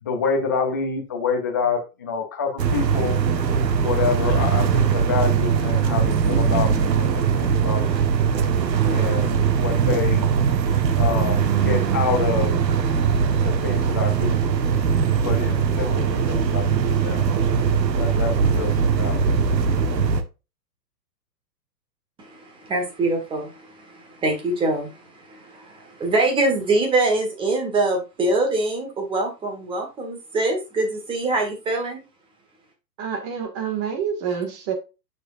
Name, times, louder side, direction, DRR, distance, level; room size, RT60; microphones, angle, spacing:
voice 1, 0.0-3.2 3.8-8.0 8.9-10.3 11.0-12.5 13.4-14.4 15.2-17.2 18.0-19.2, left 5 dB, 15° left, 0.4 m, -27 dB
sound 1, 2.6-20.2, right 6 dB, 80° right, 1.4 m, -21 dB
voice 2, 22.2-32.0, right 2 dB, 10° right, 1.5 m, -24 dB
voice 3, 33.0-34.7, right 7 dB, 25° right, 1.7 m, -27 dB
6.7 x 6.5 x 2.5 m
hypercardioid pair, 155°, 50 cm